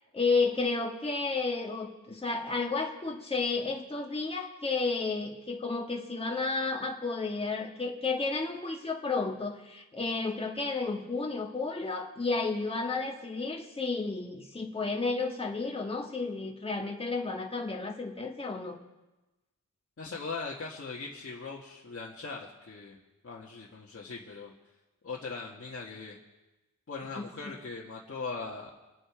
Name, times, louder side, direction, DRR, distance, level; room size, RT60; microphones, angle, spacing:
voice 1, 0.1-18.8 27.2-27.5, left 3 dB, 15° left, 0 dB, 1.5 m, -32 dB
voice 2, 20.0-23.0 23.2-24.5 25.0-26.2 26.9-28.7, left 4 dB, 45° left, -4 dB, 1.7 m, -40 dB
26.0 x 9.0 x 4.9 m, 1.1 s
wide cardioid pair, 130°, 32 cm